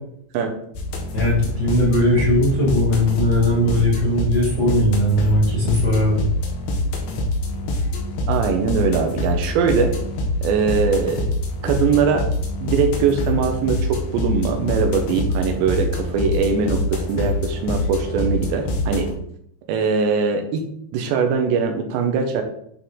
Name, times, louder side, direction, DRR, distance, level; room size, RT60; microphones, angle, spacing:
sound 1, 0.8-19.1, left 1 dB, 90° left, 3.8 m, -25 dB
voice 1, 1.1-6.3, left 1 dB, 30° left, -6 dB, 2.4 m, -19 dB
voice 2, 8.3-9.9 10.4-11.3 11.6-12.3 12.6-19.1 19.7-20.7 20.9-22.4, right 5 dB, 80° right, 5 dB, 3.1 m, -21 dB
11.5 x 4.3 x 3.8 m, 0.69 s
omnidirectional pair, 5.3 m